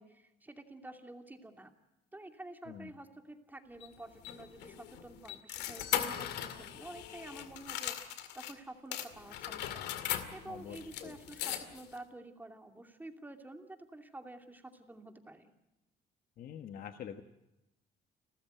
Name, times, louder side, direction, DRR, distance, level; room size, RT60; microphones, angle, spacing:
voice 1, 0.0-1.7 2.1-4.8 5.0-9.9 10.3-15.5, right 2 dB, 10° right, 5 dB, 2.7 m, -49 dB
sound 1, 3.8-8.5 8.9-12.0, left 11 dB, 85° left, 2.1 m, -39 dB
voice 2, 10.4-11.2 16.4-17.2, left 8 dB, 60° left, 7 dB, 1.3 m, -46 dB
30.0 x 13.5 x 9.2 m, 0.96 s
cardioid pair, 110°, 17 cm